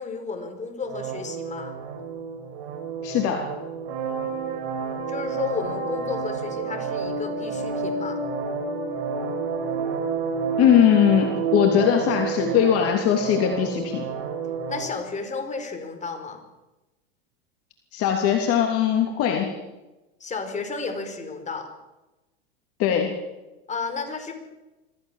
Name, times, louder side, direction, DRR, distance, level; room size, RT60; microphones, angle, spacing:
voice 1, 0.0-1.8 5.1-8.2 14.7-16.4 20.2-21.7 23.7-24.3, left 4 dB, 20° left, 6 dB, 5.1 m, -32 dB
sound 1, 0.8-14.8, right 5 dB, 60° right, 6.3 m, -30 dB
voice 2, 3.0-3.5 10.6-14.0 17.9-19.6 22.8-23.2, left 9 dB, 45° left, 3 dB, 3.2 m, -20 dB
25.5 x 15.5 x 7.4 m, 1.0 s
hypercardioid pair, 100°, 33 cm